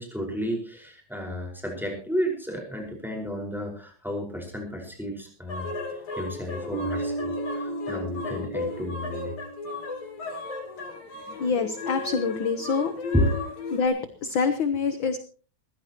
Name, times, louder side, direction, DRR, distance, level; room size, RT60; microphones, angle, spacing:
voice 1, 0.0-5.7 6.2-9.3 11.3-11.5 13.1-13.3, equal, ahead, 0 dB, 4.8 m, -32 dB
sound 1, 5.5-13.9, left 3 dB, 80° left, 4.5 m, -35 dB
Bass guitar, 6.7-10.2, right 2 dB, 40° left, 2.5 m, -35 dB
voice 2, 11.4-12.9 13.7-15.2, left 5 dB, 60° left, 9 dB, 1.4 m, -26 dB
21.5 x 16.0 x 3.0 m, 0.39 s
omnidirectional pair, 3.3 m